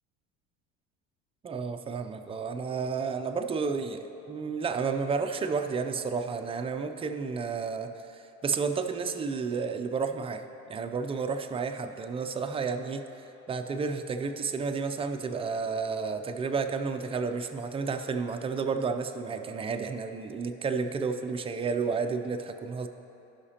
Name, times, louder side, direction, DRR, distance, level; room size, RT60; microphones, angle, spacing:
voice 1, 1.4-22.9, right 5 dB, 20° right, 6 dB, 0.4 m, -31 dB
16.5 x 5.7 x 2.9 m, 3.0 s
cardioid pair, 135°, 32 cm